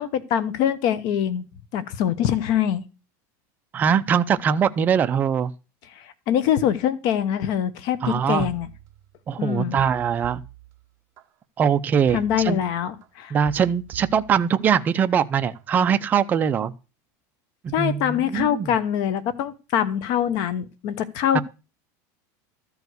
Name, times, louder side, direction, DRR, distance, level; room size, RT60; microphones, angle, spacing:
voice 1, 0.0-1.5 1.7-2.8 5.9-8.7 9.4-9.8 12.1-13.3 17.7-21.4, left 9 dB, 50° left, 1.0 m, -24 dB
voice 2, 3.7-5.5 8.0-8.5 9.3-10.4 11.6-12.6 13.3-16.7 17.6-18.7 21.3-21.4, right 7 dB, 20° right, 0.5 m, -22 dB
sound 1, 8.4-9.4 9.8-11.2 12.1-13.1 13.5-14.9 15.3-15.7, right 12 dB, 35° right, 1.0 m, -43 dB
13.0 x 4.7 x 8.0 m
supercardioid pair, 165°, 9 cm